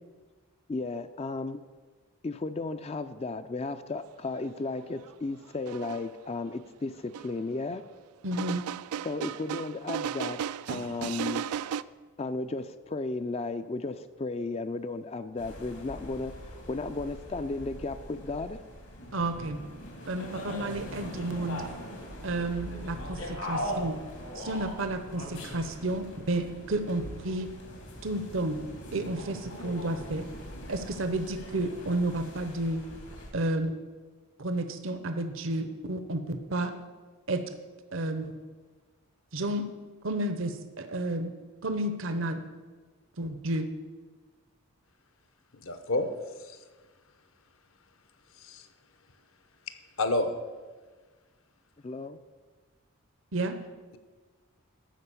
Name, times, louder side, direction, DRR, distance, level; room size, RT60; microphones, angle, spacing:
voice 1, 0.7-1.6 2.2-7.8 9.0-10.4 10.7-11.4 12.2-18.6 51.8-52.2, left 3 dB, 25° left, 11 dB, 0.3 m, -34 dB
sound 1, 5.1-5.2 5.7-6.1 7.1-7.3 8.3-11.8, right 8 dB, 80° right, 0.3 m, -35 dB
voice 2, 8.2-8.7 19.1-19.6 20.1-21.6 22.2-24.0 24.3-27.5 28.0-28.6 28.9-30.3 30.7-32.8 33.3-33.7 34.4-36.7 37.3-37.4 37.9-38.3 39.3-39.6 40.0-41.3 41.6-42.4 43.2-43.7 53.3-53.6, right 1 dB, 60° right, 8 dB, 0.7 m, -31 dB
sound 2, 15.4-33.3, equal, 80° left, 2.6 m, -41 dB
voice 3, 45.6-46.1 46.5-46.6 48.4-48.6 50.0-50.3, left 2 dB, 65° left, 9 dB, 0.9 m, -28 dB
12.5 x 4.7 x 8.3 m, 1.4 s
head